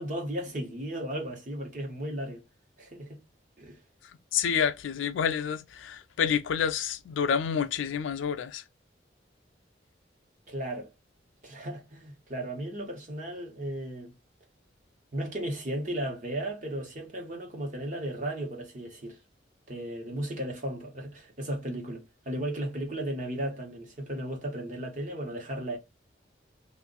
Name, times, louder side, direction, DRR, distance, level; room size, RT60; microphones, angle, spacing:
voice 1, 0.0-2.4 2.8-3.2 3.6-3.8 10.5-10.9 11.4-14.1 15.1-19.2 19.7-25.8, right 1 dB, 40° right, 1.1 m, -35 dB
voice 2, 4.3-8.6, left 7 dB, 90° left, 0.4 m, -28 dB
2.5 x 2.5 x 3.8 m
head